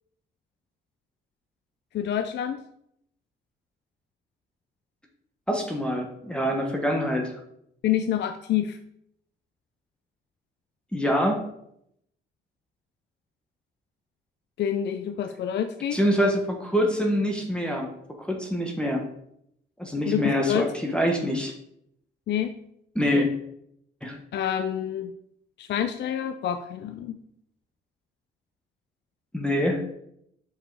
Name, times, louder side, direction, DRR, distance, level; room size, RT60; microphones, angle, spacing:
voice 1, 1.9-2.6 7.8-8.8 14.6-16.0 20.1-20.6 22.3-22.5 23.1-23.3 24.3-25.1 25.6-27.2, left 10 dB, 60° left, 8 dB, 0.5 m, -27 dB
voice 2, 5.5-7.3 10.9-11.4 15.9-17.9 18.2-19.0 19.8-21.5 22.9-23.3 24.0-24.2 29.3-29.9, equal, 5° left, 1 dB, 1.3 m, -25 dB
5.5 x 4.8 x 4.7 m, 0.74 s
cardioid pair, 90°, 20 cm